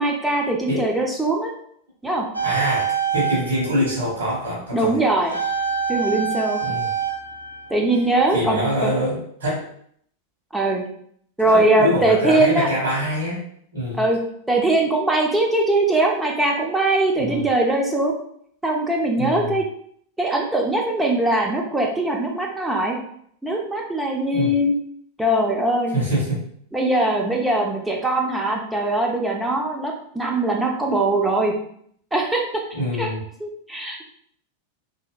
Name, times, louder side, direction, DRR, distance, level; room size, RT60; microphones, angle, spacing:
voice 1, 0.0-1.5 2.0-2.3 4.7-5.4 5.9-6.6 7.7-8.9 10.5-10.8 11.4-12.7 14.0-14.2 14.5-18.2 18.6-19.6 20.2-23.0 23.4-24.7 25.2-25.9 26.7-31.6 32.1-32.4 33.0-33.1 33.4-34.0, right 2 dB, 5° right, -1 dB, 0.5 m, -21 dB
sound 1, 2.3-4.4 5.3-8.4 8.7-8.9, right 7 dB, 90° left, 0.4 m, -26 dB
voice 2, 2.4-5.0 6.6-6.9 8.3-9.7 11.4-13.4 13.7-14.1 17.2-17.4 19.2-19.6 24.3-24.5 25.9-26.4 32.7-33.2, equal, 65° right, -5 dB, 1.2 m, -25 dB
2.7 x 2.7 x 2.3 m, 0.65 s
figure-of-eight pair, 90°, 0 cm